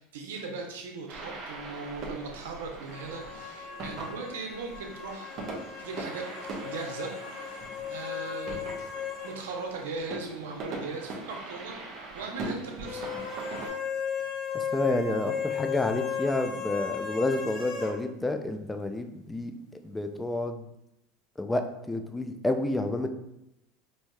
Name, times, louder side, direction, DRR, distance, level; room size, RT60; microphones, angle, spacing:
voice 1, 0.0-5.4 5.8-8.7 9.2-11.8 12.1-13.1, right 4 dB, 90° right, 2 dB, 0.7 m, -39 dB
sound 1, 1.1-13.7, right 2 dB, 45° right, 0.9 m, -41 dB
sound 2, 2.8-9.4 9.7-9.8 12.8-17.9, left 7 dB, 55° left, 0.8 m, -36 dB
voice 2, 14.5-19.6 19.8-20.7 21.4-23.1, left 2 dB, 10° left, 6 dB, 0.3 m, -29 dB
4.5 x 2.7 x 2.2 m, 0.85 s
supercardioid pair, 115°, 0 cm